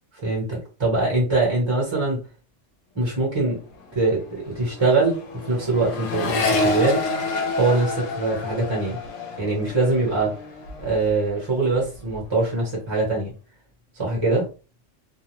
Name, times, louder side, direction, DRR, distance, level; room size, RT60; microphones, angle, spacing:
voice 1, 0.2-2.2 2.9-3.6 3.9-7.0 7.6-9.0 9.4-10.4 10.8-13.3 13.9-14.5, right 3 dB, 25° right, -4 dB, 1.0 m, -23 dB
Accelerating revving vroom, 3.3-3.5 3.8-11.3 11.6-12.3, left 3 dB, 75° left, 0.9 m, -29 dB
2.4 x 2.3 x 3.1 m, 0.34 s
omnidirectional pair, 1.3 m